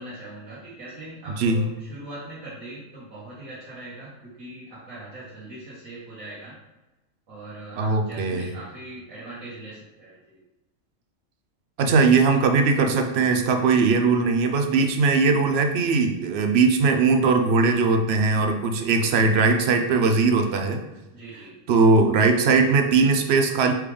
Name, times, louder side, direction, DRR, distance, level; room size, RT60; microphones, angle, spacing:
voice 1, 0.0-6.5 7.3-10.4 18.9-19.1 21.1-21.6, right 1 dB, 80° right, -10 dB, 1.5 m, -41 dB
voice 2, 7.8-8.5 11.8-20.8 21.7-23.7, right 4 dB, 60° right, 5 dB, 0.8 m, -20 dB
4.5 x 3.4 x 3.3 m, 1.0 s
omnidirectional pair, 1.4 m